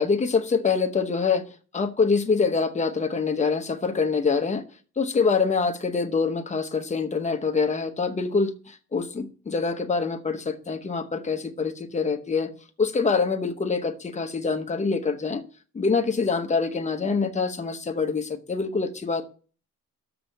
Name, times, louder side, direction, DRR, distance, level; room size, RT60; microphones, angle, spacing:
voice 1, 0.0-1.4 1.7-4.6 5.0-12.5 12.8-15.4 15.7-19.2, left 4 dB, 20° left, 6 dB, 0.8 m, -25 dB
7.0 x 6.2 x 5.2 m, 0.38 s
wide cardioid pair, 170°, 32 cm